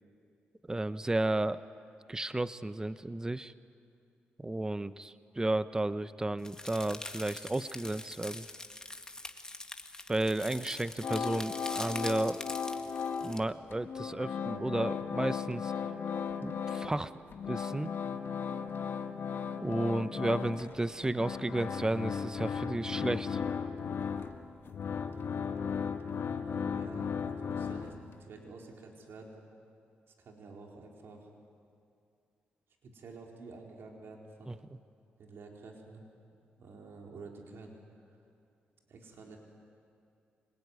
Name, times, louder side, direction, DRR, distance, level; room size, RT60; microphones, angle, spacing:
voice 1, 0.7-1.6 2.1-3.5 4.4-8.4 10.1-12.4 13.2-15.7 16.4-17.1 17.5-17.9 19.6-23.4 34.5-34.6, right 2 dB, 15° right, 14 dB, 0.8 m, -33 dB
sound 1, 6.4-13.4, left 2 dB, 15° left, 1.9 m, -44 dB
sound 2, 11.0-13.5 13.7-17.0 17.3-28.2, left 6 dB, 65° left, 1.6 m, -36 dB
voice 2, 26.2-27.9 28.2-29.4 30.2-31.3 32.8-34.6 35.2-36.0 36.6-37.8 38.1-38.2 38.9-39.4, right 3 dB, 70° right, 0 dB, 4.3 m, -50 dB
26.0 x 20.5 x 9.7 m, 2.5 s
supercardioid pair, 60°, 4 cm